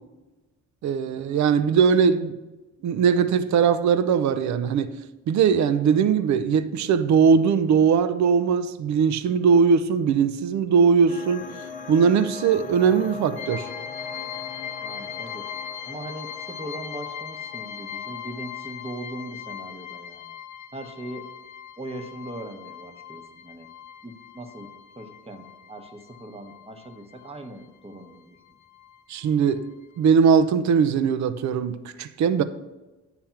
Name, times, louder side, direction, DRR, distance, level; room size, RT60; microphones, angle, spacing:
voice 1, 0.8-2.3 2.8-4.9 5.3-11.5 11.9-13.7 29.1-29.7 30.0-32.4, right 6 dB, 65° right, 0.6 m, -20 dB
sound 1, 11.1-19.4, left 5 dB, 25° left, 0.8 m, -40 dB
sound 2, 13.4-27.6 27.9-29.0 29.3-29.4 29.8-29.9, left 8 dB, 65° left, 0.6 m, -39 dB
voice 2, 14.8-15.5 15.8-20.3 20.7-21.3 21.8-23.7 24.0-24.7 25.0-28.4, right 1 dB, 20° right, 1.0 m, -39 dB
8.9 x 3.4 x 5.7 m
cardioid pair, 90°, 30 cm